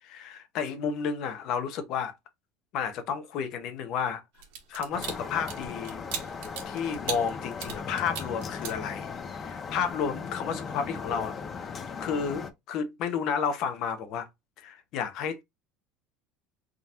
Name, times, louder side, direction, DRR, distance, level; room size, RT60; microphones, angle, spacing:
voice 1, 0.0-2.1 2.7-4.2 4.7-6.0 6.7-11.7 12.0-14.3 14.6-15.4, left 6 dB, 50° left, 0.9 m, -32 dB
sound 1, 4.4-9.4 9.8-10.0, right 7 dB, 90° right, 1.4 m, -38 dB
sound 2, 4.9-12.5, left 5 dB, 25° left, 0.6 m, -38 dB
3.8 x 3.8 x 2.9 m
cardioid pair, 150°, 0 cm